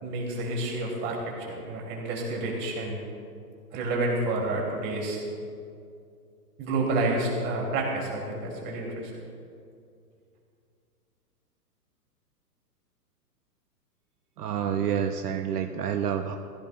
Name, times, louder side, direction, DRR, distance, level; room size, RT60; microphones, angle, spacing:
voice 1, 0.0-3.0 3.7-5.2 6.6-9.1, right 2 dB, 25° right, -1 dB, 2.7 m, -29 dB
voice 2, 14.4-16.4, right 8 dB, 70° right, 5 dB, 0.8 m, -28 dB
17.0 x 15.5 x 2.3 m, 2.4 s
hypercardioid pair, 150°, 49 cm